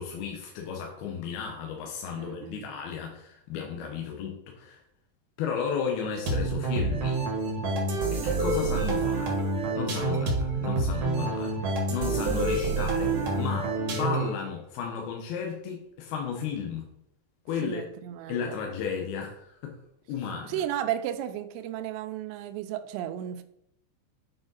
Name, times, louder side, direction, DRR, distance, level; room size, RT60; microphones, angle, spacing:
voice 1, 0.0-4.8 5.4-7.2 8.1-9.4 9.7-16.8 17.5-17.8 18.3-19.8 20.1-20.6, left 6 dB, 75° left, 1 dB, 2.4 m, -34 dB
voice 2, 2.1-2.7 17.6-18.6 20.4-23.4, right 11 dB, 85° right, 9 dB, 2.7 m, -34 dB
sound 1, 6.3-14.4, right 3 dB, 65° right, 1.6 m, -27 dB
8.8 x 4.9 x 4.0 m, 0.76 s
omnidirectional pair, 5.4 m